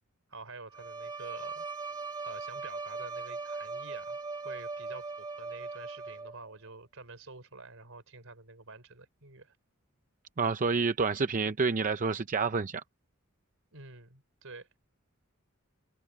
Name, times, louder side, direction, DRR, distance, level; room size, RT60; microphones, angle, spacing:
voice 1, 0.3-1.7 2.2-4.2 4.4-9.6 13.7-14.7, right 3 dB, 70° right, 4.5 m, -48 dB
Bowed string instrument, 0.7-6.5, right 4 dB, 20° right, 1.6 m, -39 dB
voice 2, 10.4-12.8, right 4 dB, 40° right, 0.6 m, -28 dB
head